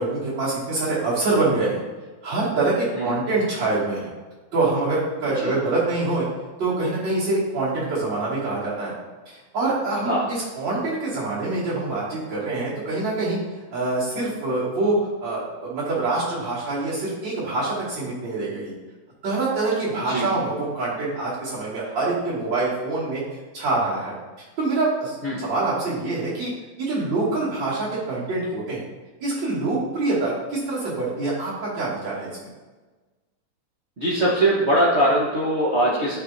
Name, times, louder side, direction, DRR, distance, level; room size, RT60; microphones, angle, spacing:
voice 1, 0.0-1.8 2.2-4.1 4.5-6.3 6.6-8.9 9.3-13.4 13.7-18.7 19.2-23.2 23.5-24.1 24.6-26.5 26.8-28.8 29.2-32.3, right 2 dB, 55° right, -10 dB, 3.1 m, -25 dB
voice 2, 34.0-36.2, right 1 dB, 35° right, -7 dB, 1.3 m, -21 dB
10.5 x 4.4 x 2.7 m, 1.3 s
omnidirectional pair, 2.4 m